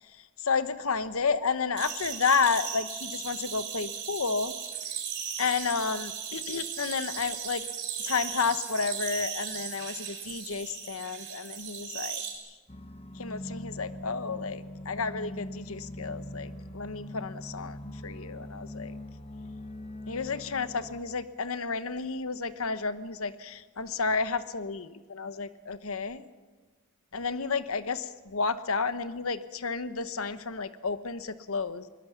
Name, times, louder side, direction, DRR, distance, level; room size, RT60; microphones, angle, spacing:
voice 1, 0.4-4.5 5.4-7.6 8.0-12.2 13.2-18.9 20.1-26.2 27.1-31.8, left 5 dB, 80° left, 12 dB, 1.0 m, -31 dB
sound 1, 1.8-12.3, right 8 dB, 55° right, 4.4 m, -37 dB
sound 2, 12.7-21.0, left 1 dB, 25° left, 1.1 m, -42 dB
21.5 x 20.5 x 7.0 m, 1.3 s
head